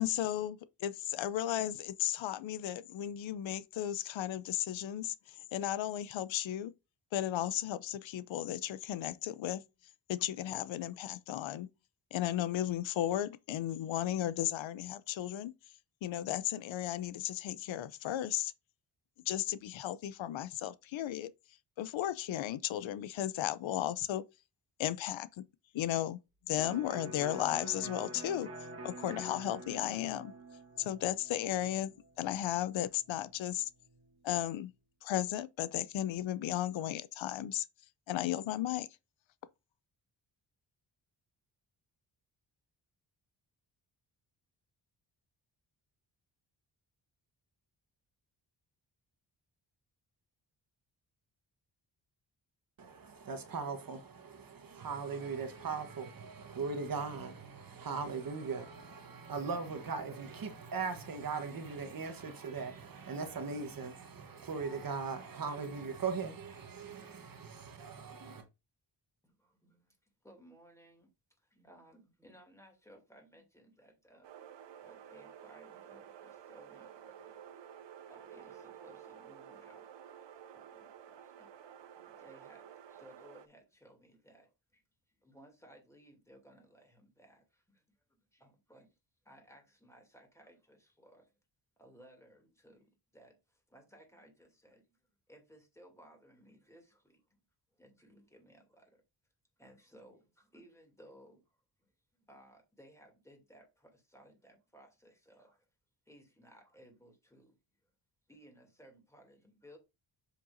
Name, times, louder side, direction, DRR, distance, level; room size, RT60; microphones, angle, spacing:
voice 1, 0.0-5.1 5.5-6.7 7.1-9.6 10.1-11.7 12.1-15.5 16.0-18.5 19.3-21.3 21.8-24.2 24.8-25.4 25.7-26.2 26.5-28.5 28.8-30.3 30.8-33.7 34.2-34.7 35.0-37.6 38.1-38.9, left 12 dB, 85° left, 0.6 m, -35 dB
Electric guitar, 26.6-34.2, right 2 dB, 30° right, 1.4 m, -48 dB
voice 2, 52.8-68.4, right 5 dB, 50° right, 1.2 m, -39 dB
voice 3, 69.2-70.0 70.2-71.1 71.4-74.3 74.8-79.9 80.5-81.5 81.9-88.9 89.2-91.4 91.8-95.0 95.3-97.2 97.8-99.0 99.6-105.7 106.1-107.6 108.3-109.8, equal, 5° left, 2.6 m, -60 dB
sound 1, 74.2-83.5, right 9 dB, 70° right, 0.9 m, -52 dB
7.5 x 6.7 x 2.6 m
wide cardioid pair, 120°, 45 cm